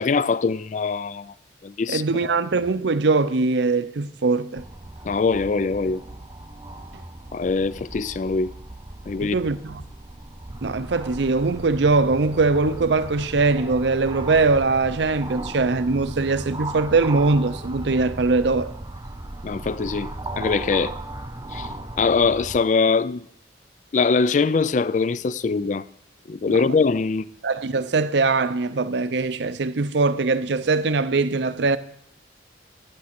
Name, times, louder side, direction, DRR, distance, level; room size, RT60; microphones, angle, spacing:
voice 1, 0.0-1.3 1.6-2.4 5.0-6.0 7.3-8.5 9.1-9.4 19.4-21.0 21.5-21.7 22.0-23.2 23.9-25.8 26.3-27.2, left 4 dB, 40° left, 0.3 m, -22 dB
voice 2, 1.9-4.6 9.2-9.8 10.6-18.7 26.5-26.6 27.4-31.8, right 3 dB, 65° right, 0.6 m, -21 dB
sound 1, 4.6-22.6, right 2 dB, 20° right, 0.6 m, -36 dB
11.0 x 9.6 x 5.9 m
head